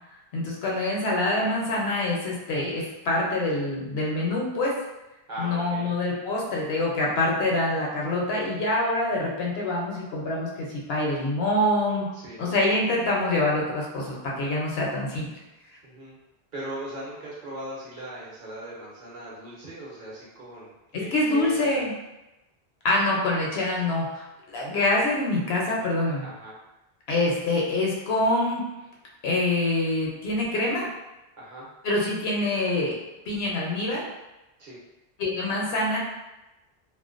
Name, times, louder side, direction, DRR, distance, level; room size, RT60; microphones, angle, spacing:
voice 1, 0.3-4.7 5.4-12.1 12.4-15.3 21.1-21.9 22.8-26.2 27.1-28.6 29.2-30.9 31.8-32.9 33.3-34.0 35.2-36.0, left 2 dB, 80° left, -3 dB, 0.9 m, -25 dB
voice 2, 5.3-5.9 12.1-12.5 15.8-16.2 16.5-21.9 26.2-26.6 31.4-31.7 34.6-34.8, right 1 dB, 55° right, -6 dB, 0.8 m, -39 dB
2.5 x 2.1 x 2.4 m, 0.99 s
omnidirectional pair, 1.0 m